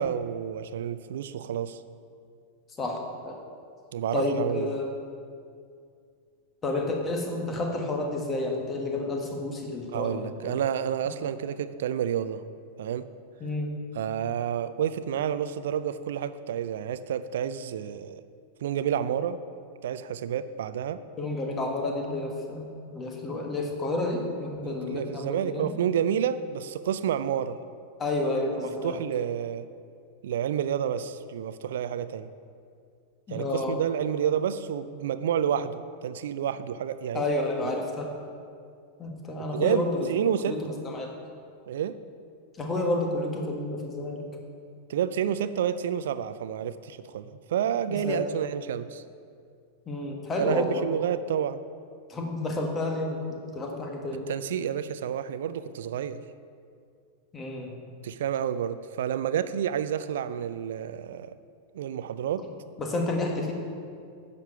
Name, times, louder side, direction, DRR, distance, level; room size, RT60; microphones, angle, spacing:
voice 1, 0.0-1.8 3.9-4.7 9.9-12.5 12.8-13.1 13.9-18.2 18.6-19.4 19.8-21.0 24.6-27.6 28.2-29.7 30.2-32.3 33.3-37.3 39.5-40.6 41.7-42.0 44.9-49.0 50.4-51.6 54.3-56.2 58.0-61.4 61.7-62.4, right 9 dB, 60° right, 13 dB, 0.4 m, -29 dB
voice 2, 2.8-3.4 4.1-4.9 6.6-10.6 13.4-13.7 21.2-25.7 28.0-29.0 33.3-33.8 37.1-38.1 39.0-40.1 40.5-41.1 42.6-44.2 47.9-48.2 49.9-50.9 52.1-53.2 53.5-54.3 57.3-57.7 62.8-63.5, left 2 dB, 20° left, 1 dB, 1.6 m, -30 dB
10.0 x 6.8 x 5.7 m, 2.3 s
figure-of-eight pair, 90°, 0 cm